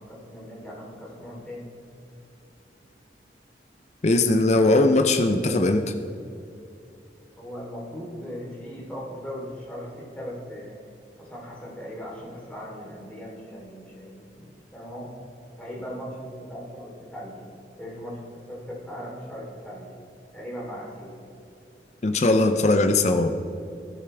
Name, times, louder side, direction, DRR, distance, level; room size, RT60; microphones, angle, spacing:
voice 1, 0.0-1.7 7.4-10.7 11.2-15.1 15.6-17.4 17.8-20.0 20.3-21.1, equal, 10° left, -6 dB, 3.5 m, -38 dB
voice 2, 4.0-5.8 22.0-23.4, left 2 dB, 40° left, 6 dB, 0.6 m, -20 dB
16.5 x 12.0 x 3.4 m, 2.6 s
head